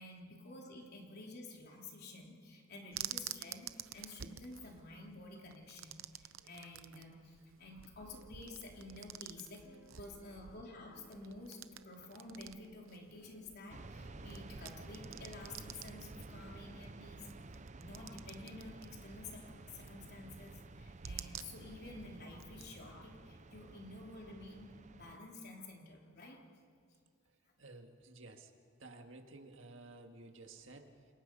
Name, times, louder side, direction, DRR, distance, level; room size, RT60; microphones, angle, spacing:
voice 1, 0.0-9.7 10.0-11.6 11.8-24.7 24.9-26.4, left 2 dB, 55° left, 0 dB, 3.7 m, -51 dB
sound 1, 2.9-22.7, right 10 dB, 85° right, 0.8 m, -51 dB
sound 2, 7.9-16.8, equal, 90° left, 7.5 m, -65 dB
sound 3, 13.7-25.2, right 2 dB, 35° right, 0.7 m, -52 dB
voice 2, 27.6-28.5 28.8-31.1, right 2 dB, 70° right, 5 dB, 2.0 m, -54 dB
29.5 x 27.0 x 5.5 m, 2.2 s
head